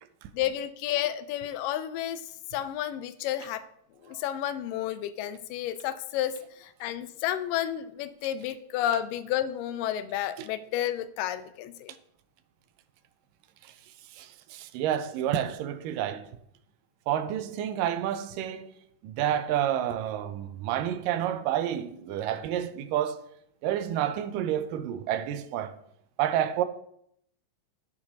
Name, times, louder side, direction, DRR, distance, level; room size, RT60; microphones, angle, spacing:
voice 1, 0.3-3.6 4.0-12.0, left 11 dB, 85° left, 2.3 m, -31 dB
voice 2, 14.1-16.3 17.1-18.7 19.0-23.2 23.6-25.7 26.2-26.6, right 11 dB, 90° right, 2.3 m, -29 dB
8.2 x 6.7 x 5.3 m
omnidirectional pair, 3.8 m